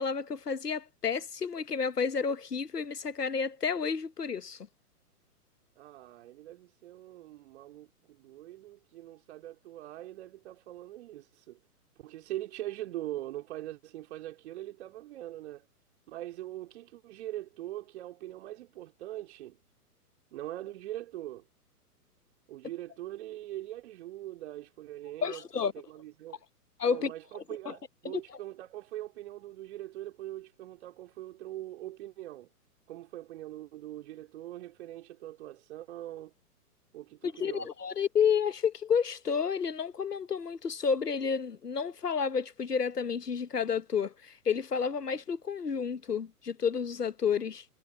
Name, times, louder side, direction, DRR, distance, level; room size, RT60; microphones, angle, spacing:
voice 1, 0.0-4.7 25.2-25.7 26.8-27.1 27.7-27.8 28.1-28.2 37.2-47.6, left 6 dB, 75° left, 1.4 m, -30 dB
voice 2, 5.8-11.6 12.0-15.7 16.1-19.6 20.3-21.5 22.5-25.4 25.7-26.4 26.9-32.5 32.9-36.3 36.9-37.7, right 14 dB, 45° right, 3.7 m, -42 dB
figure-of-eight pair, 120°, 47 cm